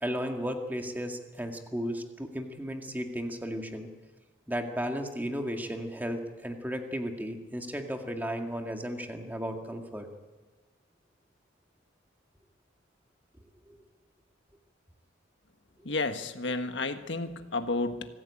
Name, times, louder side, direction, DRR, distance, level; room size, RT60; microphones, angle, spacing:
voice 1, 0.0-3.9 4.5-10.1 13.7-13.8 16.5-16.6, equal, 10° right, 4 dB, 2.1 m, -34 dB
voice 2, 15.8-18.1, left 3 dB, 65° left, 8 dB, 1.5 m, -31 dB
24.5 x 15.5 x 8.7 m, 1.2 s
head